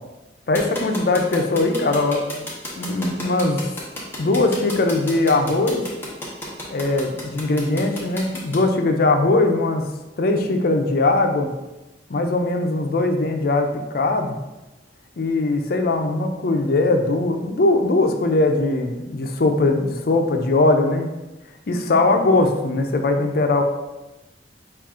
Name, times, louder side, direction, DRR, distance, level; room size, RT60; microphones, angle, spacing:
voice 1, 0.5-2.5 2.8-3.7 4.2-5.8 6.7-9.8 10.2-11.5 12.1-14.4 15.2-21.1 21.7-23.6, left 2 dB, 55° left, 5 dB, 0.5 m, -20 dB
sound 1, 0.6-8.6, left 1 dB, 10° left, 1.0 m, -32 dB
5.7 x 2.4 x 3.6 m, 1.0 s
head